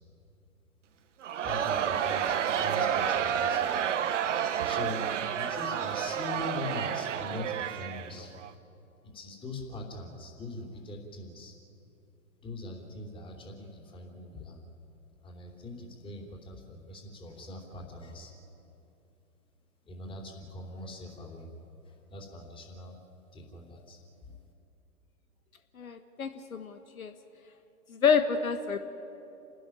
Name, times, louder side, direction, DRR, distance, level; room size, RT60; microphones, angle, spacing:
Crowd, 1.2-8.5, right 8 dB, 50° right, 1.3 m, -30 dB
voice 1, 1.4-3.7 4.4-5.0 5.4-8.4 9.1-11.5 12.4-14.6 15.2-18.3 19.9-21.5 21.8-23.0 23.3-24.4, left 2 dB, 10° left, 0 dB, 3.4 m, -42 dB
voice 2, 25.7-27.1 27.9-28.8, left 6 dB, 65° left, 8 dB, 1.5 m, -28 dB
29.0 x 13.0 x 10.0 m, 2.9 s
figure-of-eight pair, 120°, 45 cm